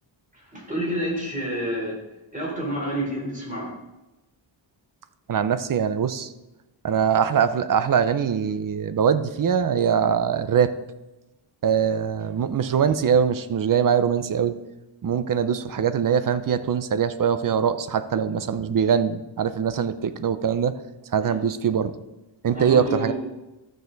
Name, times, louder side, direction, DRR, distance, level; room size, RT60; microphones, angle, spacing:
voice 1, 0.3-2.0 2.3-3.7 21.2-21.4 22.5-23.1, right 1 dB, 15° right, -3 dB, 3.8 m, -29 dB
voice 2, 5.3-6.3 6.8-10.7 11.6-14.5 15.0-20.7 21.1-21.9 22.4-23.1, right 7 dB, 45° right, 12 dB, 0.6 m, -22 dB
13.0 x 6.5 x 4.0 m, 1.0 s
wide cardioid pair, 130°, 47 cm